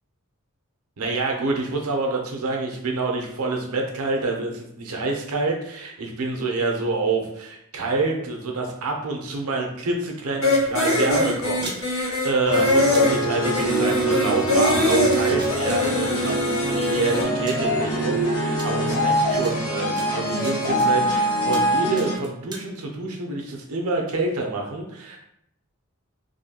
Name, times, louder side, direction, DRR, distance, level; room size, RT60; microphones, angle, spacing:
voice 1, 1.0-25.2, right 3 dB, 85° right, 1 dB, 0.6 m, -27 dB
sound 1, 10.4-17.2, left 2 dB, 60° left, 1.2 m, -23 dB
sound 2, 11.6-11.8 12.9-13.0 14.3-14.4 14.9-15.8 16.9-17.0 17.5-17.7 18.6-18.7 19.4-19.5 20.0-21.2 21.5-21.7 22.0-22.6, right 3 dB, 20° right, 0.3 m, -37 dB
sound 3, 12.4-22.2, right 1 dB, 85° left, 0.9 m, -24 dB
2.6 x 2.2 x 2.8 m, 0.75 s
head